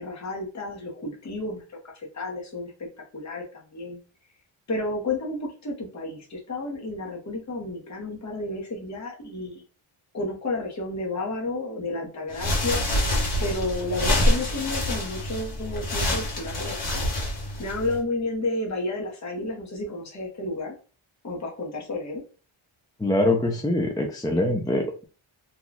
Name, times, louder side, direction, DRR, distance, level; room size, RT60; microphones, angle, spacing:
voice 1, 0.0-2.9 3.1-4.0 4.7-9.6 10.1-12.8 13.4-17.0 17.6-20.7 21.2-22.2, left 2 dB, 35° left, -1 dB, 1.0 m, -31 dB
sound 1, 12.3-18.0, left 1 dB, 50° left, 1.5 m, -26 dB
voice 2, 23.0-25.0, left 1 dB, 10° left, 2 dB, 0.4 m, -24 dB
2.9 x 2.3 x 3.9 m, 0.38 s
wide cardioid pair, 150°, 50 cm